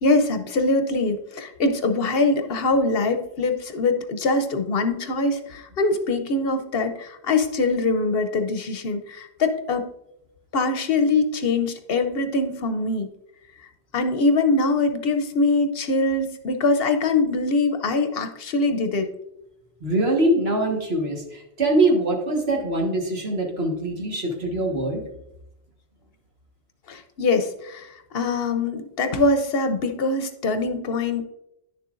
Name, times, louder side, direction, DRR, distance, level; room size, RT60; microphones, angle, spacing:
voice 1, 0.0-9.8 10.5-13.1 13.9-19.1 26.9-27.9 28.1-31.2, left 3 dB, 65° left, 7 dB, 0.9 m, -23 dB
voice 2, 19.8-25.0, right 1 dB, 70° right, 0 dB, 1.7 m, -23 dB
10.0 x 6.8 x 2.5 m, 0.85 s
omnidirectional pair, 1.1 m